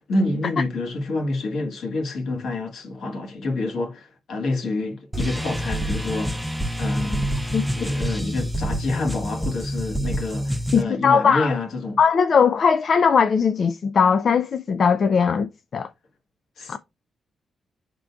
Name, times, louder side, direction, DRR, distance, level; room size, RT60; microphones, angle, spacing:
voice 1, 0.1-6.5 6.8-7.3 7.7-12.0 16.6-16.8, left 2 dB, 75° left, 1.4 m, -28 dB
sound 1, 5.1-10.8, equal, 5° right, 0.5 m, -27 dB
voice 2, 10.7-11.6 12.0-15.9 16.7-16.8, left 6 dB, 55° left, 0.3 m, -19 dB
11.0 x 3.7 x 2.3 m
cardioid pair, 85°, 0 cm